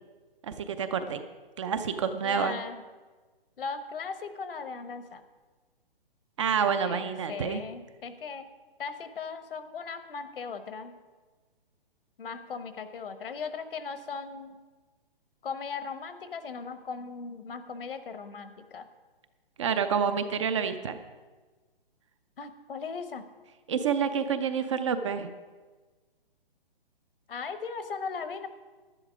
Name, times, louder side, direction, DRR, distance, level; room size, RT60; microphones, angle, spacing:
voice 1, 0.4-1.2 1.6-2.6 6.4-7.6 19.6-21.0 23.7-25.3, right 7 dB, 30° right, 9 dB, 0.6 m, -28 dB
voice 2, 2.2-2.8 3.6-5.2 6.8-8.5 8.8-10.9 12.2-14.6 15.4-18.9 22.4-23.3 27.3-28.5, left 5 dB, 70° left, 11 dB, 1.1 m, -38 dB
11.0 x 10.5 x 5.0 m, 1.3 s
hypercardioid pair, 150°, 29 cm